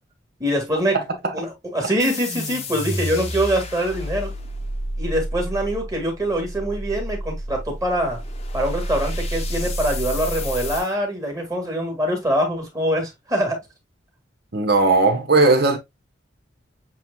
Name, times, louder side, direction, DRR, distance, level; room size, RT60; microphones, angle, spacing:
voice 1, 0.4-1.0 1.3-4.3 5.0-8.2 8.5-13.6, equal, 20° right, 2.0 m, -24 dB
voice 2, 0.9-1.3 14.5-15.8, right 3 dB, 55° right, 1.2 m, -18 dB
sound 1, 2.0-10.9, equal, 35° left, 0.8 m, -29 dB
7.6 x 3.1 x 2.2 m
head